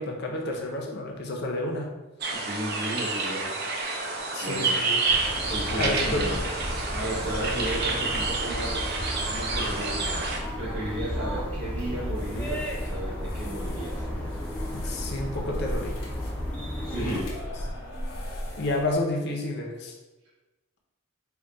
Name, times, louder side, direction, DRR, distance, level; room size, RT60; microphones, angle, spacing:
voice 1, 0.0-1.9 4.3-5.0 5.7-6.4 14.7-15.9 16.9-17.3 18.6-20.0, left 2 dB, 50° left, 0 dB, 0.6 m, -30 dB
sound 1, 2.2-10.4, right 3 dB, 50° right, 0.5 m, -29 dB
voice 2, 2.3-3.5 4.4-4.8 5.5-6.4 6.9-10.2 10.6-14.1 16.8-17.3, right 1 dB, 70° right, -9 dB, 1.0 m, -34 dB
sound 2, 5.1-17.2, equal, 5° left, 0.5 m, -33 dB
sound 3, 12.1-18.9, left 1 dB, 85° left, 0.8 m, -37 dB
3.4 x 2.2 x 3.9 m, 1.1 s
head